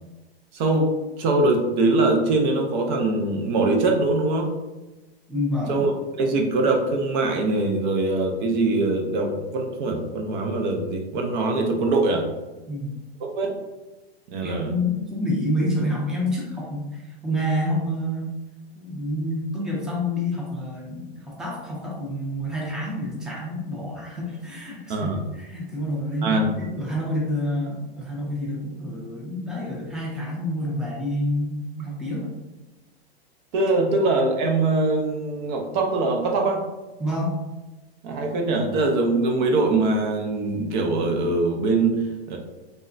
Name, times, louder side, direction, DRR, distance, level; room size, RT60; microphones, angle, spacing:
voice 1, 0.5-0.9 1.2-4.5 5.7-5.9 6.2-12.2 13.2-13.6 14.3-14.7 24.9-25.2 26.2-26.5 33.5-36.6 38.0-42.4, right 2 dB, 50° right, 2 dB, 0.6 m, -22 dB
voice 2, 5.3-5.9 12.7-13.0 14.4-18.3 18.7-32.3 33.8-33.9 37.0-37.3, left 1 dB, ahead, -4 dB, 0.5 m, -28 dB
3.4 x 2.1 x 2.5 m, 1.1 s
hypercardioid pair, 115°, 31 cm